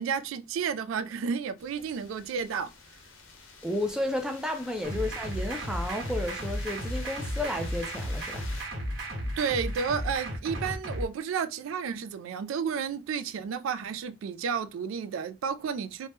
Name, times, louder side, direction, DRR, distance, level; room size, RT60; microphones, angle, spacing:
voice 1, 0.0-2.7 9.4-16.1, right 6 dB, 85° right, 0.3 m, -31 dB
sound 1, 1.6-8.6, left 4 dB, 75° left, 0.6 m, -48 dB
voice 2, 3.6-8.5, left 1 dB, 5° right, 0.3 m, -32 dB
sound 2, 4.8-11.0, equal, 65° right, 1.1 m, -34 dB
2.7 x 2.1 x 3.3 m
head